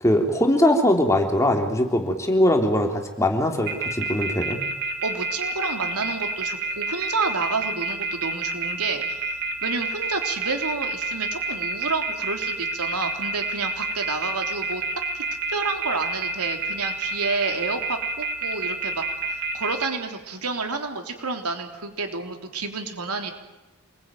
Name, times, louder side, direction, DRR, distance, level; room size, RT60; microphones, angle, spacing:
voice 1, 0.0-4.6, left 1 dB, 15° left, 3 dB, 3.4 m, -21 dB
sound 1, 3.7-19.9, right 4 dB, 50° right, 3.6 m, -28 dB
voice 2, 5.0-14.8 15.1-15.2 15.5-23.3, right 3 dB, 90° right, 5 dB, 3.5 m, -30 dB
27.5 x 21.0 x 9.2 m, 1.0 s
head